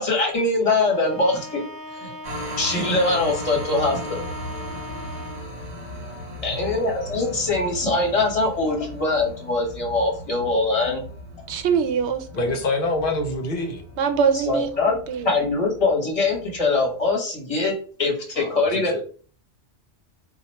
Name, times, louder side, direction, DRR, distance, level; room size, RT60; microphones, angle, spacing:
voice 1, 0.0-1.6 2.0-2.1 2.6-4.2 6.4-11.0 14.3-14.9 15.2-17.7 18.0-19.0, left 3 dB, 35° left, 1.0 m, -22 dB
Bowed string instrument, 0.8-5.6, left 1 dB, 10° left, 0.4 m, -38 dB
sound 1, 2.2-17.1, equal, 55° right, 1.4 m, -37 dB
voice 2, 11.5-12.6 14.0-15.4, right 6 dB, 85° right, 0.9 m, -24 dB
voice 3, 12.3-13.8 18.4-19.0, left 2 dB, 55° left, 0.8 m, -26 dB
2.9 x 2.3 x 4.2 m
omnidirectional pair, 1.1 m